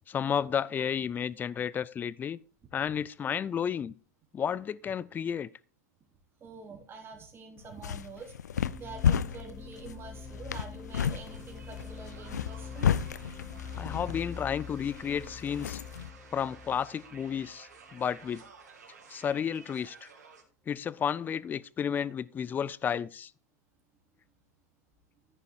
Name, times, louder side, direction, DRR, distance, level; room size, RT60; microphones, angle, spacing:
voice 1, 0.1-2.4 2.7-3.9 4.3-5.5 13.8-15.8 16.3-18.4 19.1-20.1 20.7-23.3, left 8 dB, 20° left, 0.4 m, -32 dB
voice 2, 6.4-12.9, right 4 dB, 25° right, 3.4 m, -46 dB
sound 1, 7.6-16.1, left 8 dB, 85° left, 0.5 m, -33 dB
sound 2, 8.5-18.3, left 6 dB, 5° left, 0.8 m, -45 dB
sound 3, 11.0-20.4, right 5 dB, 85° right, 2.6 m, -54 dB
14.0 x 5.6 x 4.6 m
hypercardioid pair, 105°, 9 cm